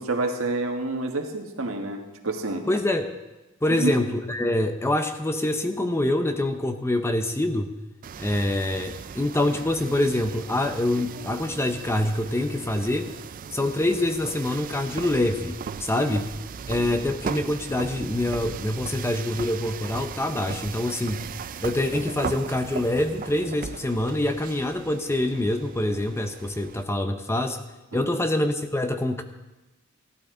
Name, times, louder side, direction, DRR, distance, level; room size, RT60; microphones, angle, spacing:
voice 1, 0.0-2.7 3.7-4.0 15.9-16.2 27.9-28.2, right 2 dB, 75° right, 3 dB, 1.6 m, -29 dB
voice 2, 2.7-3.1 3.6-7.7 8.2-13.1 13.5-16.3 16.7-21.3 21.6-27.6 27.9-29.2, left 1 dB, 10° left, 7 dB, 0.7 m, -25 dB
sound 1, 8.0-26.8, right 6 dB, 40° right, 0.3 m, -38 dB
16.0 x 12.0 x 3.8 m, 1.1 s
head